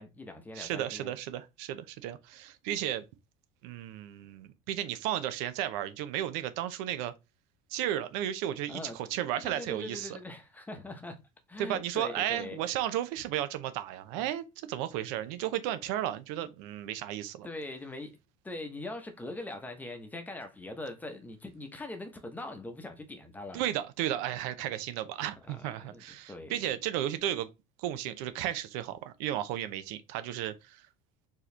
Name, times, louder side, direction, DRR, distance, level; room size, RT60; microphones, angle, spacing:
voice 1, 0.0-1.1 8.7-9.0 9.4-11.2 11.5-12.6 14.1-14.3 16.4-16.5 17.4-18.2 18.4-23.6 25.4-26.7, left 2 dB, 10° left, 0.9 m, -42 dB
voice 2, 0.6-3.0 3.6-7.1 7.7-10.1 11.6-17.5 23.5-27.5 27.8-30.9, right 12 dB, 70° right, 0.7 m, -34 dB
4.6 x 3.0 x 3.3 m
cardioid pair, 145°, 17 cm